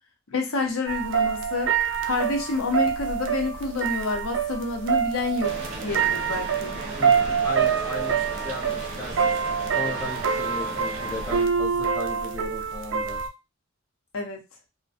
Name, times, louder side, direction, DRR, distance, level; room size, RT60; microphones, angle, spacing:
voice 1, 0.3-1.7 2.0-6.8 14.1-14.4, left 3 dB, 80° left, 3 dB, 0.6 m, -28 dB
sound 1, 0.9-13.3, right 7 dB, 60° right, 0.4 m, -26 dB
sound 2, 5.4-11.4, right 2 dB, 35° right, 0.9 m, -37 dB
voice 2, 7.0-9.4 9.7-13.2, left 2 dB, 15° left, -2 dB, 0.6 m, -36 dB
2.4 x 2.1 x 2.4 m, 0.24 s
head